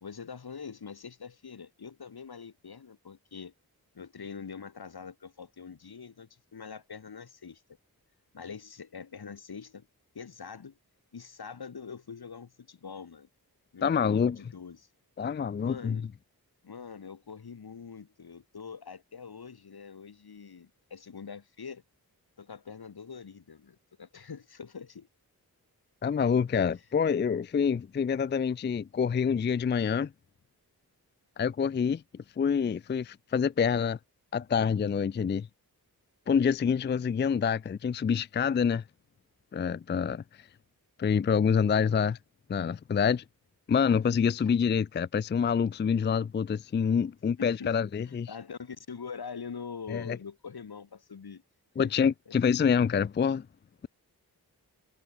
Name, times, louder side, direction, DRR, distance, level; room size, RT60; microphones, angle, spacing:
voice 1, 0.0-3.5 3.9-7.6 8.3-9.9 10.1-10.8 11.1-13.3 13.7-14.9 15.6-16.0 16.6-21.8 22.4-25.1 44.4-44.5 47.4-47.8 48.0-51.4 51.8-52.3, left 6 dB, 75° left, 2.8 m, -44 dB
voice 2, 13.8-14.4 15.2-16.0 26.0-30.1 31.4-32.0 32.4-34.0 34.3-35.5 36.3-38.8 39.5-40.2 41.0-42.2 42.5-43.2 43.7-48.3 49.9-50.2 51.8-53.5, left 6 dB, 30° left, 0.4 m, -26 dB
cardioid pair, 60°, 38 cm